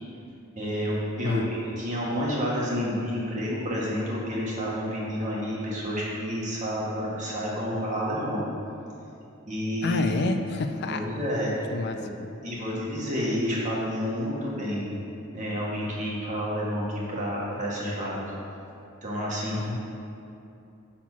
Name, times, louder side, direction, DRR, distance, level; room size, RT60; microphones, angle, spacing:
voice 1, 0.5-8.4 9.5-10.2 10.9-12.1 12.4-14.9 15.3-18.3 19.0-19.6, equal, 35° right, -5 dB, 1.5 m, -29 dB
voice 2, 9.8-11.0 11.7-12.0 19.5-19.8, left 3 dB, 50° left, 7 dB, 0.3 m, -28 dB
6.1 x 4.3 x 6.0 m, 2.7 s
head